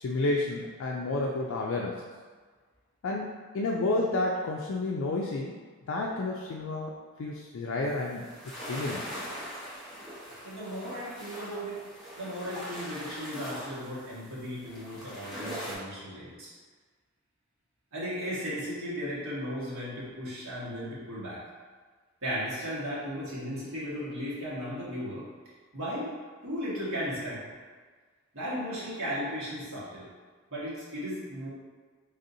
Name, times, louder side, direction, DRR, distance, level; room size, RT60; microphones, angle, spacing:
voice 1, 0.0-2.0 3.0-5.6 5.9-6.9 7.2-8.3 8.7-9.2, left 2 dB, 75° left, -2 dB, 0.4 m, -30 dB
sound 1, 7.9-15.8, equal, ahead, 0.8 m, -41 dB
voice 2, 10.4-11.9 12.2-16.5 17.9-21.4 22.2-25.2 25.7-26.1 26.4-27.4 28.3-30.1 30.5-31.5, equal, 75° right, -8 dB, 1.5 m, -36 dB
4.0 x 3.5 x 2.7 m, 1.5 s
head